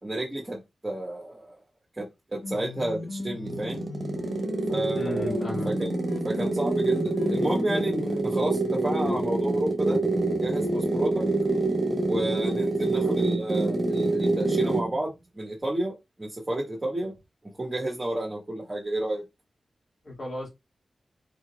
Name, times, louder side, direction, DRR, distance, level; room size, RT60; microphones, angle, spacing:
voice 1, 0.0-1.6 2.0-3.9 4.7-5.9 6.2-10.0 10.4-11.2 12.0-17.1 17.6-19.2, right 1 dB, 20° right, 1.6 m, -31 dB
sound 1, 2.4-8.2, left 3 dB, 80° left, 0.9 m, -36 dB
sound 2, 3.2-15.0, right 2 dB, 45° right, 1.0 m, -26 dB
voice 2, 4.9-5.7 13.0-13.1 20.0-20.5, left 1 dB, 60° left, 2.3 m, -35 dB
4.7 x 4.4 x 2.3 m
wide cardioid pair, 75°, 0 cm